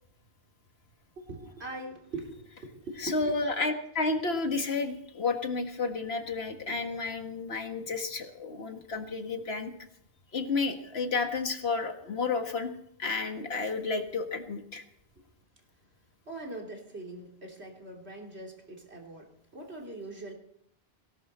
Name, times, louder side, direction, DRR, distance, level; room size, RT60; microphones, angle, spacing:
voice 1, 1.2-3.5 16.3-20.3, right 2 dB, 85° right, 1 dB, 3.2 m, -42 dB
voice 2, 3.0-9.7 10.3-12.7 13.0-14.8, left 3 dB, 75° left, 5 dB, 1.9 m, -31 dB
18.5 x 17.5 x 4.3 m, 0.74 s
omnidirectional pair, 1.1 m